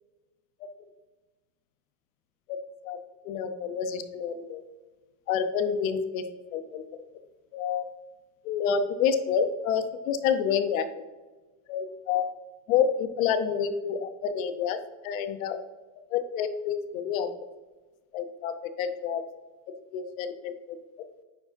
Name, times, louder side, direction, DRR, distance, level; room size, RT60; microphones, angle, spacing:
voice 1, 3.2-4.6 5.3-6.2 6.5-6.8 7.5-7.8 8.4-10.9 11.7-12.2 12.7-14.8 15.0-15.6 16.1-17.3 18.1-19.2 19.9-20.8, left 7 dB, 90° left, 9 dB, 0.8 m, -28 dB
9.2 x 4.9 x 2.6 m, 1.2 s
supercardioid pair, 155°, 40 cm